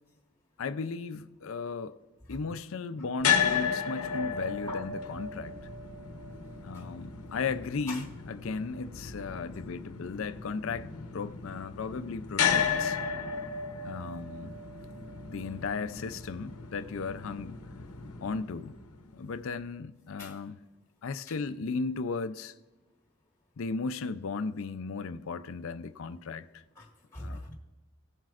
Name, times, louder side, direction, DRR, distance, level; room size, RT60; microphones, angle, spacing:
voice 1, 0.6-2.0 2.3-5.5 6.6-10.9 11.1-13.0 13.8-14.5 15.3-17.6 18.2-18.7 19.1-20.6 21.0-22.5 23.6-26.6 27.2-27.4, left 4 dB, 60° left, 0.4 m, -36 dB
sound 1, 3.2-19.3, left 7 dB, 85° left, 0.8 m, -34 dB
voice 2, 26.7-27.5, left 1 dB, 10° left, 1.3 m, -43 dB
16.5 x 7.5 x 2.4 m
head